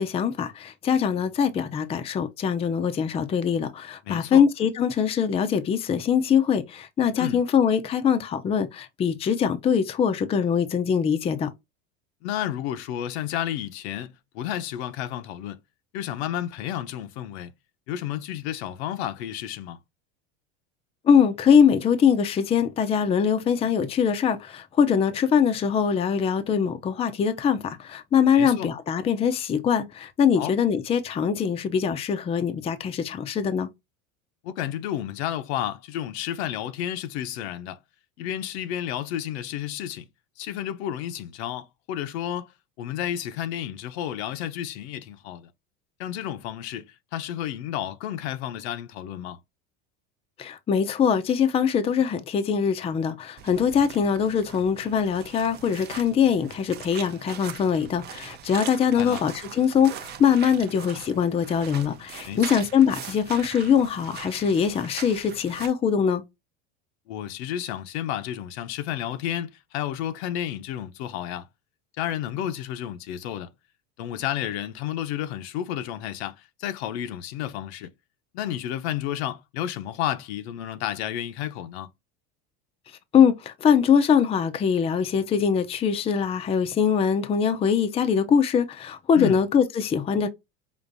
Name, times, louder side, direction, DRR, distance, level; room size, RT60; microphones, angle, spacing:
voice 1, 0.0-11.5 21.0-33.7 50.4-66.2 83.1-90.3, left 7 dB, 20° left, 0.4 m, -22 dB
voice 2, 4.1-4.4 7.2-7.4 12.2-15.6 15.9-17.5 17.9-19.8 28.3-28.7 30.3-30.5 34.4-37.8 38.2-40.1 40.4-42.5 42.8-45.5 46.0-49.4 59.0-59.2 62.2-62.6 67.1-71.5 72.0-73.5 74.0-77.9 78.3-81.9 89.2-89.4, left 11 dB, 80° left, 0.8 m, -31 dB
sound 1, 53.4-65.7, right 9 dB, 30° right, 0.6 m, -41 dB
5.3 x 2.6 x 2.5 m
supercardioid pair, 135°, 32 cm